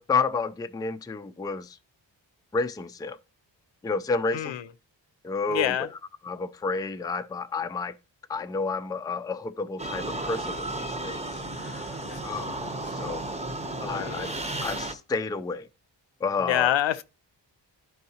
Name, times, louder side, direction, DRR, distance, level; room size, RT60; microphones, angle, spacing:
voice 1, 0.0-1.8 2.5-3.2 3.8-4.5 5.2-6.0 6.2-7.9 8.3-12.6 12.9-13.3 13.8-14.3 14.6-15.7 16.2-16.7, left 4 dB, 10° left, 0.3 m, -30 dB
voice 2, 5.5-5.9 12.1-12.2 13.9-14.4 16.4-17.0, left 11 dB, 85° left, 0.6 m, -26 dB
sound 1, 9.8-14.9, right 2 dB, 15° right, 0.7 m, -33 dB
11.5 x 4.7 x 2.8 m
wide cardioid pair, 115°, 44 cm